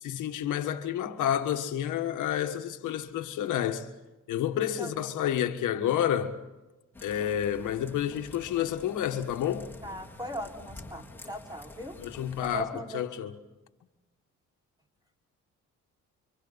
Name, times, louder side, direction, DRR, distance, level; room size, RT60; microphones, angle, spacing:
voice 1, 0.0-3.9 4.3-6.4 7.0-9.7 12.0-13.4, left 10 dB, 85° left, 1.7 m, -30 dB
sound 1, 6.9-12.6, left 2 dB, 5° left, 3.8 m, -48 dB
voice 2, 9.8-12.0 12.4-13.1, right 1 dB, 15° right, 5.1 m, -39 dB
30.0 x 26.0 x 4.2 m
cardioid pair, 90°, 30 cm